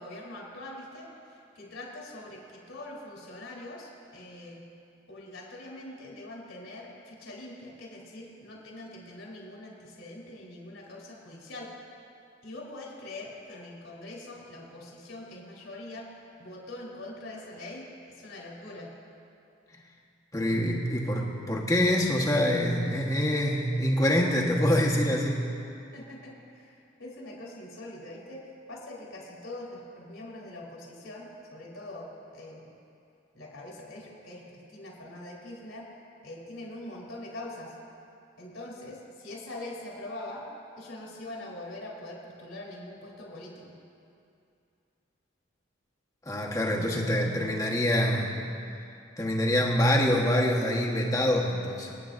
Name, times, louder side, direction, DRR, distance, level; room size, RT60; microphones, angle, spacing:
voice 1, 0.0-4.6 5.1-11.7 12.4-16.1 16.4-18.9 25.9-32.7 33.3-35.9 36.2-37.8 38.4-40.5 40.8-43.7, left 1 dB, 90° left, -3 dB, 3.5 m, -43 dB
voice 2, 20.3-25.4 46.2-48.3 49.2-51.9, equal, 15° left, -2 dB, 1.2 m, -25 dB
27.0 x 9.4 x 2.6 m, 2.5 s
head